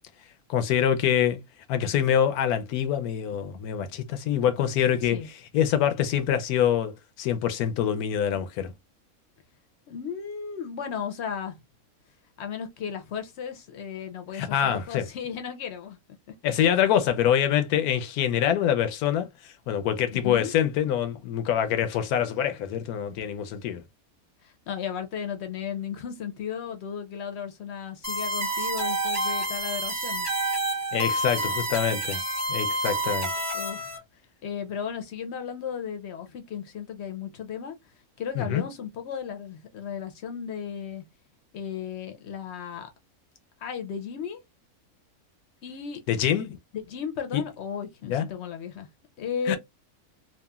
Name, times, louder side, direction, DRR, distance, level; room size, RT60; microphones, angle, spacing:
voice 1, 0.5-1.4 1.7-5.2 5.5-8.7 14.3-15.1 16.4-19.3 19.7-23.8 30.9-32.2 32.5-33.3 38.4-38.6 46.1-46.6 47.3-47.4 48.0-48.3 49.5-49.6, left 9 dB, 80° left, 1.1 m, -25 dB
voice 2, 9.9-11.6 12.4-16.0 16.5-16.6 20.1-20.5 24.4-30.3 33.5-34.0 34.4-37.8 38.2-41.0 41.5-42.9 43.6-44.4 45.6-46.0 46.7-48.9 49.2-49.6, left 7 dB, 60° left, 0.8 m, -35 dB
sound 1, 28.0-34.0, right 1 dB, 10° right, 1.1 m, -28 dB
2.9 x 2.4 x 2.2 m
omnidirectional pair, 1.6 m